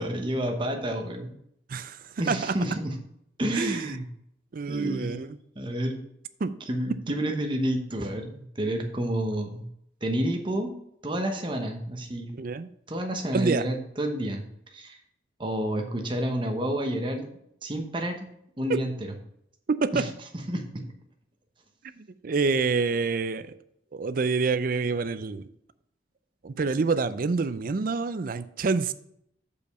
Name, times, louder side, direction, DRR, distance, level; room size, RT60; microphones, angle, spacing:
voice 1, 0.0-1.3 2.2-2.9 3.4-4.1 4.7-5.2 5.6-6.0 6.7-9.7 10.0-10.7 11.0-12.3 12.9-14.4 14.7-15.0 15.4-17.3 17.6-18.3 18.6-18.9 19.9-20.1 20.5-20.8, right 1 dB, 25° right, 3 dB, 1.1 m, -29 dB
voice 2, 1.7-2.5 3.5-4.0 4.5-5.4 6.4-6.6 12.3-12.7 13.3-13.6 18.7-18.8 19.7-20.0 22.0-23.5 23.9-25.5 26.4-28.9, right 4 dB, 50° right, 13 dB, 0.4 m, -27 dB
6.8 x 5.3 x 5.3 m, 0.72 s
head